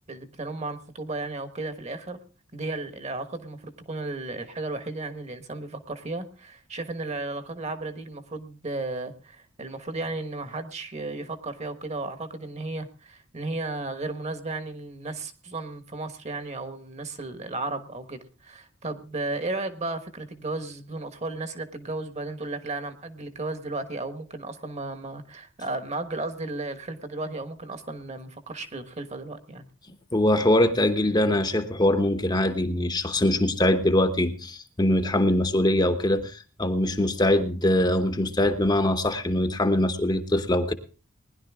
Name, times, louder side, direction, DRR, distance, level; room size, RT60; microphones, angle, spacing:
voice 1, 0.1-2.2 2.5-29.7, right 2 dB, 35° right, 9 dB, 1.3 m, -34 dB
voice 2, 30.1-40.7, left 1 dB, 20° left, 8 dB, 1.0 m, -23 dB
20.0 x 11.0 x 3.6 m, 0.35 s
head